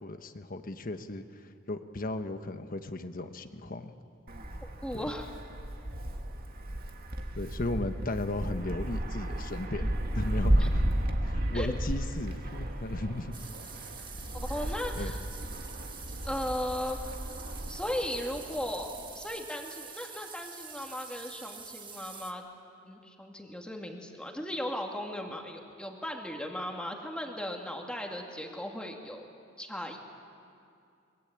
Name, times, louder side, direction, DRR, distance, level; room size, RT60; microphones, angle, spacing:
voice 1, 0.0-3.9 4.9-5.1 7.3-10.9 11.2-13.3 14.9-15.1, left 2 dB, 45° left, 8 dB, 1.2 m, -36 dB
Wind, 4.3-19.2, right 1 dB, 50° right, 1.8 m, -33 dB
voice 2, 4.8-5.3 10.6-10.7 11.5-11.7 14.5-15.2 16.3-17.0 17.7-22.4 22.9-29.3 29.6-30.0, left 1 dB, 5° left, 1 dB, 2.4 m, -36 dB
sound 1, 13.3-22.3, right 6 dB, 25° right, 1.6 m, -46 dB
24.0 x 22.5 x 9.0 m, 2.4 s
head